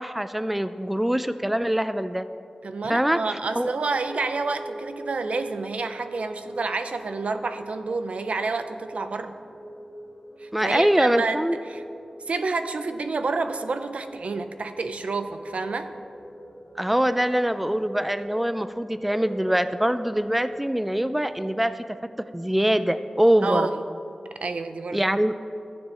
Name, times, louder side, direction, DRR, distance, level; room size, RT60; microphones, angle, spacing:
voice 1, 0.0-2.3 2.9-3.2 3.6-3.7 10.5-11.6 16.8-21.8 22.3-23.7 24.9-25.3, equal, 5° right, 12 dB, 0.3 m, -23 dB
voice 2, 2.6-9.4 10.4-11.4 11.7-11.8 12.3-15.9 23.4-23.8 24.4-25.1, right 3 dB, 85° right, 9 dB, 0.5 m, -29 dB
sound 1, 3.8-21.6, equal, 70° left, 1.5 m, -43 dB
14.5 x 6.9 x 2.9 m, 2.5 s
wide cardioid pair, 75°, 2 cm